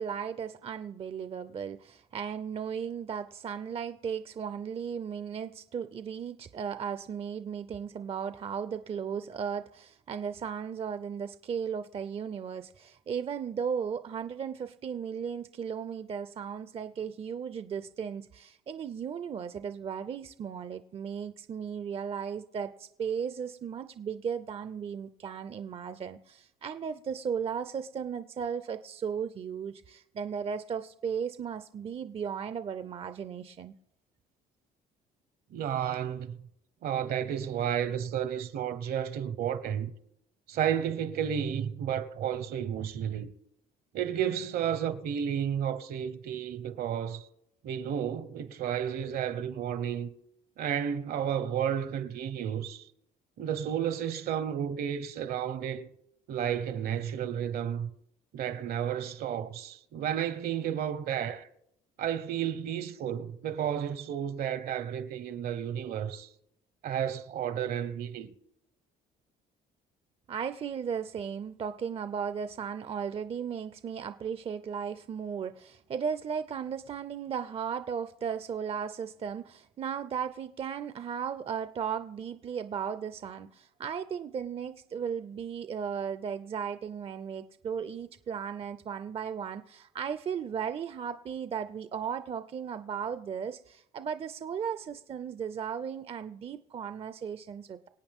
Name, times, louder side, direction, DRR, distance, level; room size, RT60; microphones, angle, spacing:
voice 1, 0.0-33.7 70.3-97.9, right 7 dB, 35° right, 0.5 m, -36 dB
voice 2, 35.5-36.4 36.8-39.9 40.5-43.3 43.9-47.3 47.6-50.1 50.6-52.8 53.4-55.9 56.3-57.9 58.3-61.5 62.0-66.3 66.8-68.3, right 9 dB, 65° right, 1.0 m, -32 dB
25.5 x 8.7 x 3.6 m
cardioid pair, 110°, 17 cm